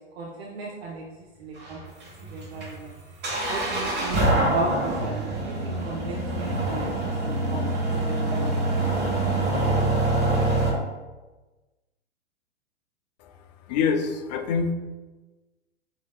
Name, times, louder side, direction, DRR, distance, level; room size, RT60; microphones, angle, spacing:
voice 1, 0.2-1.0 1.4-1.8 2.3-3.0 3.4-7.6 8.1-8.7, right 3 dB, 55° right, -3 dB, 0.9 m, -35 dB
sound 1, 1.6-10.7, right 2 dB, 30° right, 1.3 m, -25 dB
voice 2, 13.7-14.7, left 5 dB, 35° left, 6 dB, 0.5 m, -25 dB
7.0 x 2.9 x 2.4 m, 1.2 s
figure-of-eight pair, 110°, 36 cm